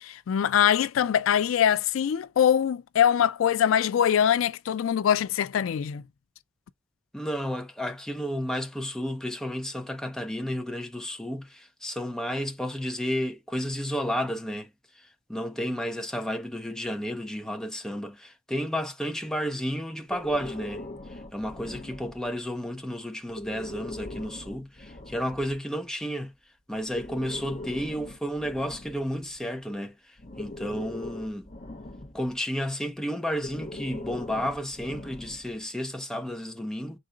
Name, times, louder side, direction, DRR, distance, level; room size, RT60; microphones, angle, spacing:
voice 1, 0.0-6.0, left 9 dB, 80° left, 0.3 m, -23 dB
voice 2, 7.1-26.3 26.7-31.5 32.1-37.0, equal, 5° left, 0.6 m, -32 dB
Breathing, 20.1-22.5 23.3-25.6 26.7-29.6 30.2-32.4 33.3-35.6, left 2 dB, 40° left, 0.8 m, -41 dB
5.0 x 3.7 x 2.4 m
head